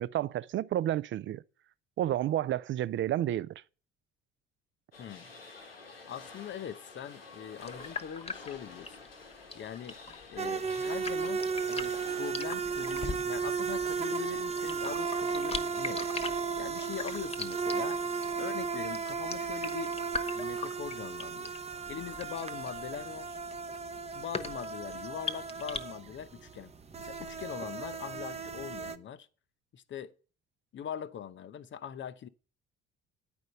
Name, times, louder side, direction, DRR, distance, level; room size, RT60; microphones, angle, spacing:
voice 1, 0.0-1.4 2.0-3.6, right 12 dB, 40° right, 0.5 m, -30 dB
sound 1, 4.9-12.3, left 4 dB, 90° left, 1.0 m, -50 dB
voice 2, 6.1-9.0 9.5-10.0 10.3-11.4 11.7-18.0 18.4-19.9 20.3-21.5 21.9-23.4 24.1-26.7 27.0-29.3 29.7-30.1 30.7-32.3, left 9 dB, 40° left, 0.8 m, -42 dB
sound 2, 7.6-25.8, left 4 dB, 20° left, 1.1 m, -41 dB
sound 3, 10.4-29.0, right 5 dB, 20° right, 0.8 m, -35 dB
9.9 x 5.3 x 7.7 m
figure-of-eight pair, 50°, 29 cm